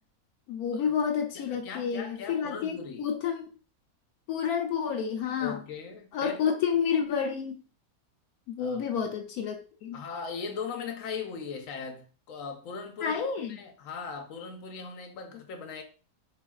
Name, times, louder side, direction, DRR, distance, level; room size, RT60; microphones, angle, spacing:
voice 1, 0.5-3.4 4.3-5.6 6.1-7.6 8.5-10.0 13.0-13.6, left 7 dB, 85° left, 1.2 m, -30 dB
voice 2, 1.3-3.1 5.4-6.4 8.6-8.8 9.9-15.8, left 5 dB, 65° left, 1.1 m, -39 dB
4.2 x 3.4 x 2.3 m
omnidirectional pair, 1.6 m